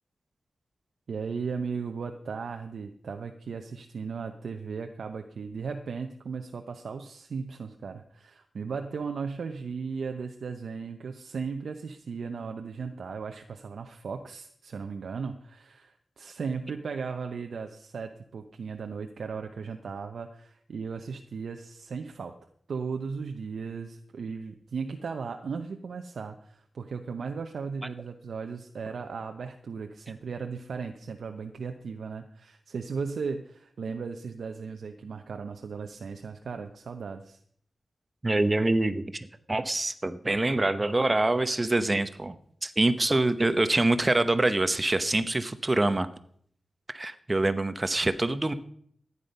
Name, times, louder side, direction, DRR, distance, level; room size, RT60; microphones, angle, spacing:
voice 1, 1.1-22.3 22.7-37.4, right 5 dB, 80° right, 5 dB, 0.8 m, -36 dB
voice 2, 38.2-42.4 42.6-46.1 46.9-48.5, right 2 dB, 25° right, 12 dB, 0.9 m, -25 dB
14.5 x 9.8 x 5.4 m, 0.64 s
wide cardioid pair, 90°, 0 cm